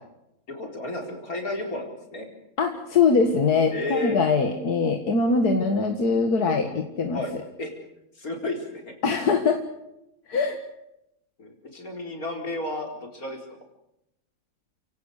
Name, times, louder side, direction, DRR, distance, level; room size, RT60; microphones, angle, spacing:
voice 1, 0.5-2.3 3.7-4.2 7.1-7.7 8.2-9.0 11.4-13.6, left 2 dB, 65° left, 3 dB, 4.8 m, -32 dB
voice 2, 2.6-7.2 9.0-9.6 10.3-10.6, left 4 dB, 90° left, 4 dB, 2.3 m, -22 dB
29.5 x 17.5 x 6.6 m, 0.85 s
omnidirectional pair, 1.6 m